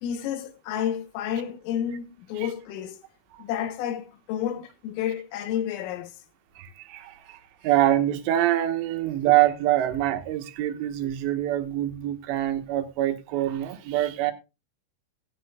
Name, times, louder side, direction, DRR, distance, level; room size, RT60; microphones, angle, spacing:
voice 1, 0.0-3.0 3.4-6.2, left 10 dB, 85° left, 3.6 m, -30 dB
voice 2, 6.6-14.3, right 13 dB, 70° right, 3.0 m, -25 dB
17.0 x 10.5 x 2.3 m
omnidirectional pair, 5.7 m